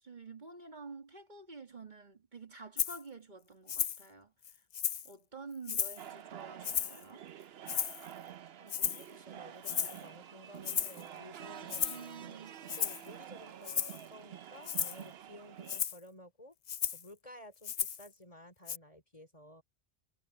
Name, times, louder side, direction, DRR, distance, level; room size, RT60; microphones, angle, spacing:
voice 1, 0.0-4.6 5.0-7.3 11.8-12.6, right 4 dB, 45° right, 2.0 m, -49 dB
Rattle (instrument), 2.8-3.0 3.7-4.0 4.4-5.1 5.7-6.0 6.6-7.0 7.7-8.1 8.7-9.1 9.6-10.0 10.6-11.0 11.7-12.0 12.7-13.1 13.6-14.0 14.6-15.0 15.7-16.0 16.7-17.1 17.6-18.1 18.7-18.8, left 8 dB, 50° left, 0.6 m, -34 dB
sound 1, 6.0-15.8, right 10 dB, 65° right, 0.9 m, -49 dB
voice 2, 8.6-12.4 12.8-16.6 16.9-19.6, left 1 dB, 30° left, 4.1 m, -54 dB
omnidirectional pair, 1.1 m